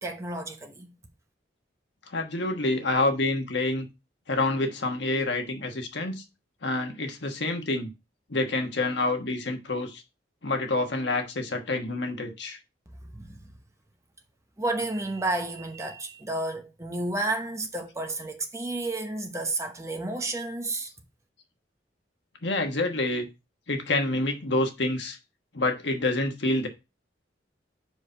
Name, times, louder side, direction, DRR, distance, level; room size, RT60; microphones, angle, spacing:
voice 1, 0.0-0.9 13.0-13.5 14.6-20.9, right 2 dB, 15° right, 0.9 m, -31 dB
voice 2, 2.1-3.9 4.3-6.2 6.6-7.9 8.3-10.0 10.4-12.6 22.4-23.3 23.7-25.2 25.5-26.7, left 2 dB, 75° left, 1.3 m, -27 dB
5.3 x 5.0 x 4.3 m
head